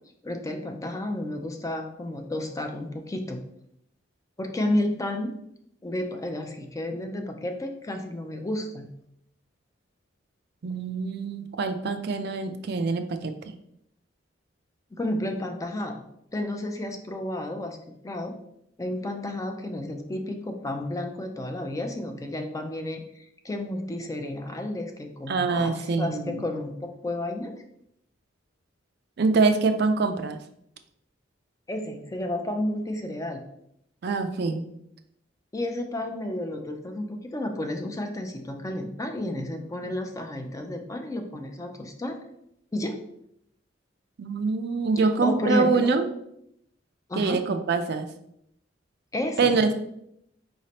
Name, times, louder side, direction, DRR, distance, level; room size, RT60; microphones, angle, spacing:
voice 1, 0.2-3.4 4.4-5.3 5.8-8.9 14.9-16.0 16.3-17.8 18.0-18.3 18.8-27.6 31.7-33.5 35.5-42.2 42.7-43.0 45.2-45.9 47.1-47.4 49.1-49.6, left 1 dB, 15° left, 4 dB, 0.4 m, -31 dB
voice 2, 10.6-13.3 25.3-26.5 29.2-30.4 34.0-34.6 44.2-46.1 47.2-48.1 49.4-49.8, right 4 dB, 60° right, 7 dB, 0.4 m, -24 dB
4.9 x 3.2 x 2.8 m, 0.75 s
head